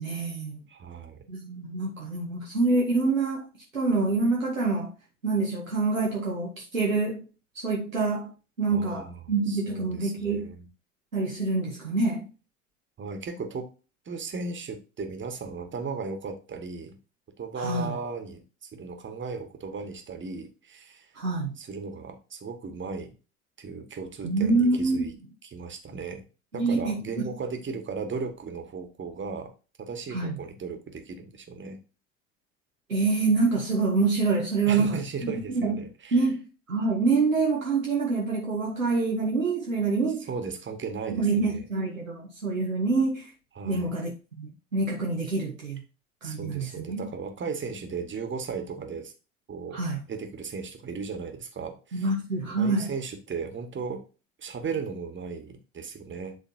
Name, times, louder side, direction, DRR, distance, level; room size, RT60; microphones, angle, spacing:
voice 1, 0.0-0.6 1.3-3.5 3.7-4.9 5.2-7.2 7.5-8.3 8.6-10.5 11.1-12.3 17.6-18.0 21.1-21.5 24.2-25.1 26.5-27.3 30.1-30.4 32.9-35.8 36.1-36.4 36.7-40.3 41.2-43.3 43.6-45.8 46.2-47.1 49.7-50.0 51.9-52.9, right 3 dB, 90° right, 1.3 m, -26 dB
voice 2, 0.7-1.2 8.7-10.7 13.0-13.7 14.0-17.0 17.4-21.2 21.6-23.2 23.6-25.1 25.4-26.2 26.5-29.5 29.8-31.8 34.7-36.2 40.3-41.6 43.5-43.9 46.2-49.1 49.5-49.8 50.1-52.1 52.6-54.0 54.4-56.4, right 5 dB, 30° right, 1.7 m, -36 dB
10.5 x 3.8 x 2.7 m
figure-of-eight pair, 65°, 39 cm